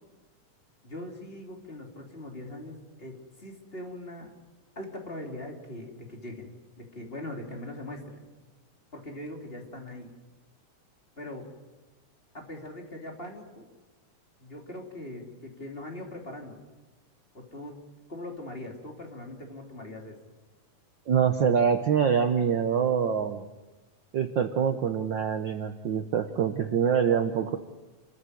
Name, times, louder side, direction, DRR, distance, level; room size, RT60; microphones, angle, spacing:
voice 1, 0.8-4.3 4.7-6.5 6.8-8.2 8.9-10.1 11.1-11.5 12.3-13.7 14.4-16.6 17.3-17.8 18.1-20.1, left 1 dB, 20° left, 1 dB, 3.2 m, -41 dB
voice 2, 21.1-23.4 24.1-27.6, right 7 dB, 70° right, 7 dB, 1.1 m, -25 dB
29.5 x 14.5 x 9.9 m, 1.1 s
omnidirectional pair, 3.6 m